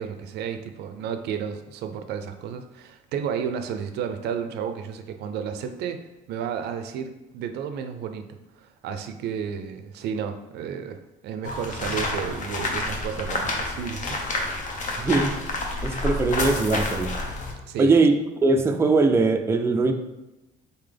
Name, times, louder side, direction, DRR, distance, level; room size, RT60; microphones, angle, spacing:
voice 1, 0.0-6.0 6.3-14.2 17.7-18.0, right 7 dB, 75° right, 8 dB, 0.5 m, -32 dB
sound 1, 11.4-17.5, left 2 dB, 50° left, 0.9 m, -29 dB
voice 2, 15.0-15.4 15.8-17.1 17.8-19.9, right 3 dB, 15° right, 5 dB, 0.4 m, -21 dB
4.2 x 3.6 x 3.4 m, 0.99 s
cardioid pair, 110°, 17 cm